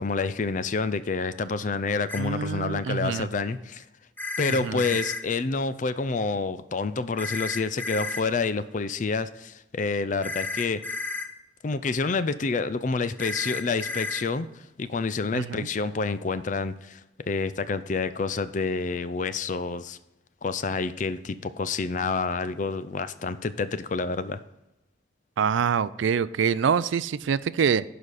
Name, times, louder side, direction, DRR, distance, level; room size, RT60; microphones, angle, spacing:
voice 1, 0.0-3.8 4.4-10.8 11.6-17.0 17.3-20.0 20.4-24.4, left 4 dB, 40° left, 14 dB, 0.4 m, -28 dB
sound 1, 2.1-2.2 4.2-5.2 7.2-8.2 10.2-11.3 13.2-14.2, left 3 dB, 10° left, 0.7 m, -32 dB
voice 2, 2.2-3.3 4.6-4.8 15.3-15.7 25.4-27.8, right 6 dB, 75° right, 17 dB, 0.4 m, -25 dB
11.0 x 5.1 x 4.1 m, 0.93 s
head